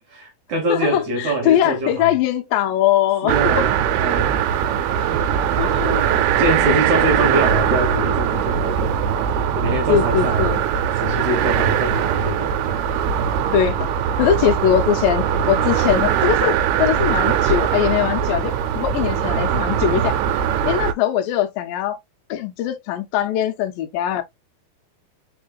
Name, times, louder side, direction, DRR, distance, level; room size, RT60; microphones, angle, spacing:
voice 1, 0.1-2.2 3.2-4.4 5.1-5.4 6.4-9.0 9.5-10.6 10.9-12.6 13.1-13.4 19.9-20.2, right 1 dB, 65° right, 2.1 m, -24 dB
voice 2, 0.7-3.7 5.0-5.2 5.6-6.8 9.9-10.6 13.5-13.9 14.2-20.2 20.7-22.0 22.3-24.2, left 10 dB, 75° left, 2.2 m, -21 dB
sound 1, 3.3-20.9, right 8 dB, 85° right, 2.6 m, -20 dB
4.8 x 4.5 x 2.3 m
omnidirectional pair, 4.5 m